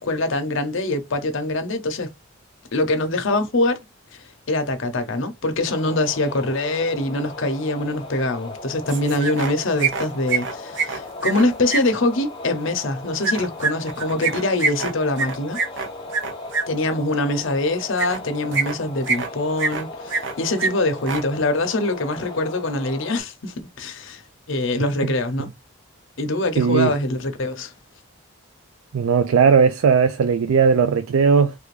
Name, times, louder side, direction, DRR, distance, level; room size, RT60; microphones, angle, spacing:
voice 1, 0.0-2.1 2.7-3.8 4.1-15.6 16.7-24.2 24.5-25.5 26.2-27.7, left 2 dB, 65° left, 0.8 m, -24 dB
sound 1, 5.7-23.2, left 2 dB, 20° left, 0.6 m, -37 dB
sound 2, 8.9-9.5 9.8-11.8 13.2-16.6 18.0-18.2 18.5-19.3 19.6-20.3 20.6-20.7 21.0-21.2, right 4 dB, 55° right, 0.7 m, -24 dB
voice 2, 26.6-27.0 28.9-31.5, right 6 dB, 75° right, 0.4 m, -17 dB
3.4 x 2.5 x 3.2 m
head